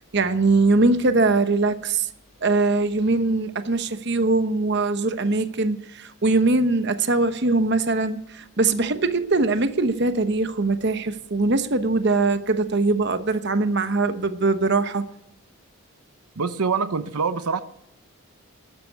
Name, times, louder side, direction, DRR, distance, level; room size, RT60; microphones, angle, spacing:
voice 1, 0.1-2.1 2.4-15.0, right 3 dB, 50° right, 10 dB, 0.9 m, -22 dB
voice 2, 16.4-17.6, right 5 dB, 85° right, 12 dB, 0.8 m, -25 dB
12.5 x 11.0 x 7.9 m, 0.82 s
head